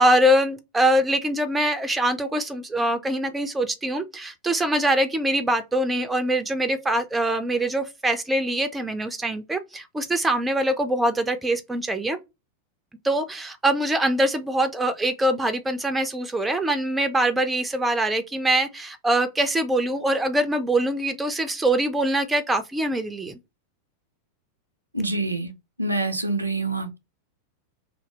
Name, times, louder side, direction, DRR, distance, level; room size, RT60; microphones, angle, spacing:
voice 1, 0.0-12.2 13.0-23.4, right 1 dB, 10° right, 0.4 m, -23 dB
voice 2, 24.9-25.5 25.8-27.0, right 2 dB, 85° right, 0.4 m, -26 dB
2.7 x 2.0 x 3.1 m
figure-of-eight pair, 90°, 0 cm